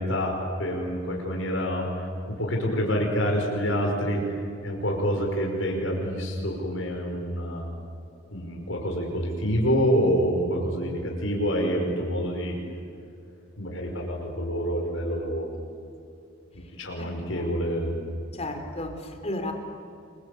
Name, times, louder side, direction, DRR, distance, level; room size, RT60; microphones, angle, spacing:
voice 1, 0.0-4.2 4.6-7.7 8.3-12.6 13.6-15.6 16.5-17.9, equal, 80° left, 0 dB, 5.7 m, -27 dB
voice 2, 17.0-17.5 18.3-19.5, left 1 dB, 35° left, 5 dB, 3.8 m, -34 dB
29.5 x 24.0 x 8.4 m, 2.5 s
head